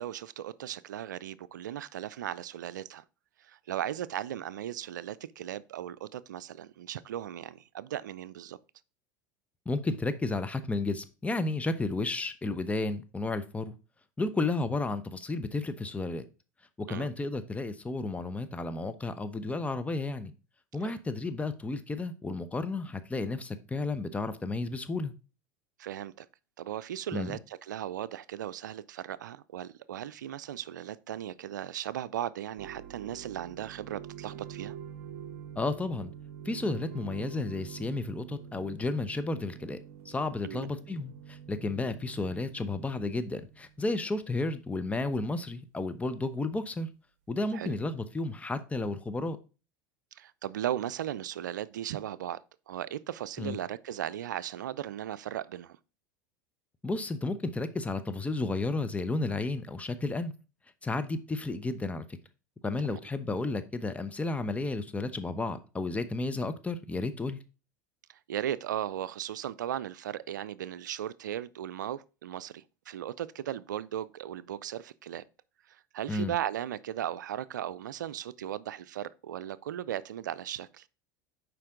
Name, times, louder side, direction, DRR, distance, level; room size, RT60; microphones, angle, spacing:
voice 1, 0.0-3.0 3.4-8.6 16.9-17.1 20.8-21.0 25.8-26.3 26.6-34.8 40.4-40.7 47.5-47.7 50.1-52.4 52.7-55.8 62.9-63.0 68.1-75.2 75.7-80.9, right 11 dB, 85° right, 0.4 m, -37 dB
voice 2, 9.7-13.7 14.2-16.2 16.8-20.3 20.7-25.1 27.1-27.3 35.6-36.1 36.4-39.8 40.0-46.9 47.3-49.4 53.4-53.6 56.8-60.3 60.8-62.0 62.6-67.4 76.1-76.3, left 2 dB, 15° left, 1.0 m, -32 dB
sound 1, 32.6-44.1, right 9 dB, 65° right, 0.9 m, -46 dB
7.6 x 5.1 x 3.7 m
hypercardioid pair, 90°, 10 cm